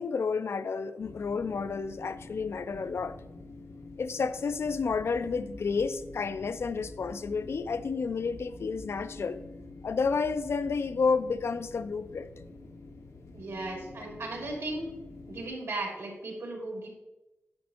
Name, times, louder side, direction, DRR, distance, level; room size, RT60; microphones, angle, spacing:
voice 1, 0.0-3.2 4.0-9.4 9.8-12.3, left 5 dB, 60° left, 0.3 m, -30 dB
sound 1, 1.0-15.5, left 3 dB, 85° left, 0.9 m, -48 dB
sound 2, 4.9-7.9 8.3-11.3, right 2 dB, 50° right, 1.2 m, -52 dB
voice 2, 13.3-14.9 15.3-16.9, right 2 dB, 70° right, 2.4 m, -36 dB
9.6 x 6.3 x 2.9 m
wide cardioid pair, 150°, 5 cm